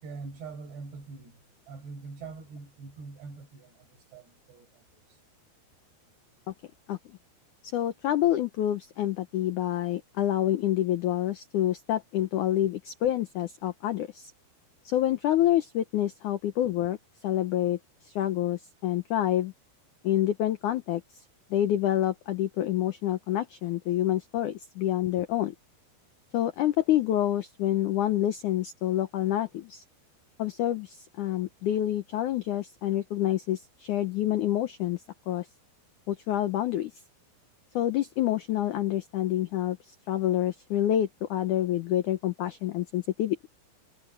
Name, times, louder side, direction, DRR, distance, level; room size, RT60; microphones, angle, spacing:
voice 1, 0.0-1.4 1.7-5.0, right 4 dB, 75° right, 7.7 m, -43 dB
voice 2, 7.7-14.3 14.8-17.0 17.2-17.8 18.0-19.5 20.0-21.0 21.5-25.5 26.3-29.8 30.4-35.5 36.1-36.9 37.7-39.8 40.1-43.5, left 12 dB, 85° left, 1.7 m, -27 dB
omnidirectional pair, 4.9 m